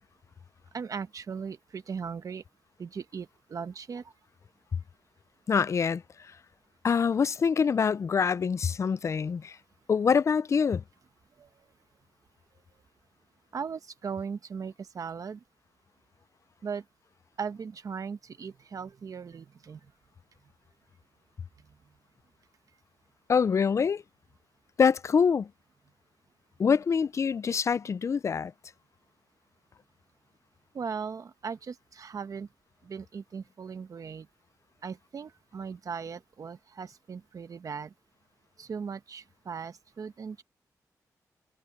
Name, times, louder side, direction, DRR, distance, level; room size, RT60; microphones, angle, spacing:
voice 1, 0.7-2.4 2.8-4.0 11.4-11.5 13.5-15.4 16.6-16.8 17.4-19.8 30.7-32.5 32.8-34.3 34.8-37.9 38.6-40.4, right 6 dB, 60° right, 1.1 m, -38 dB
voice 2, 5.5-6.0 6.8-9.6 9.9-10.8 23.3-24.0 24.8-25.5 26.6-28.5, left 6 dB, 50° left, 0.4 m, -25 dB
cardioid pair, 80°, 7 cm